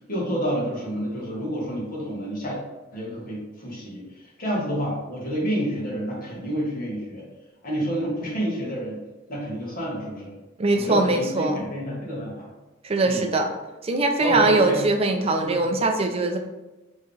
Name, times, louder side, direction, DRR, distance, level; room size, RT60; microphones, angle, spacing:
voice 1, 0.1-2.6 2.9-7.3 7.6-9.0 9.3-10.3 10.7-12.5 13.0-13.3 14.2-14.8 15.4-15.7, equal, 40° left, -4 dB, 1.6 m, -29 dB
voice 2, 10.6-11.6 12.8-13.5 13.8-16.4, right 2 dB, 30° right, 4 dB, 0.4 m, -22 dB
4.7 x 3.2 x 3.5 m, 1.1 s
head